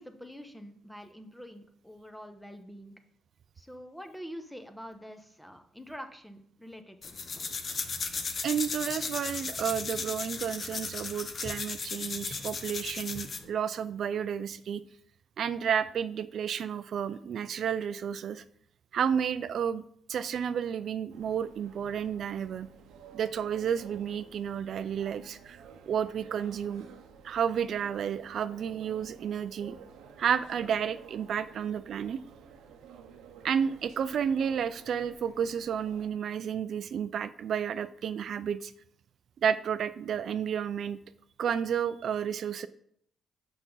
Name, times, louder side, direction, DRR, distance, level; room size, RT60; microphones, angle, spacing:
voice 1, 0.0-2.9 3.6-7.4 7.7-7.8, equal, 5° left, 7 dB, 0.9 m, -46 dB
sound 1, 7.0-13.5, left 4 dB, 45° left, 0.8 m, -36 dB
voice 2, 8.4-14.8 15.4-18.4 18.9-19.8 20.1-22.7 23.1-25.6 25.9-26.9 27.2-29.8 30.2-32.2 33.4-38.7 39.4-41.0 41.4-42.7, right 8 dB, 65° right, 12 dB, 0.3 m, -31 dB
sound 2, 21.1-36.1, right 6 dB, 90° right, 0.7 m, -53 dB
5.9 x 5.8 x 3.9 m, 0.66 s
cardioid pair, 90°, 0 cm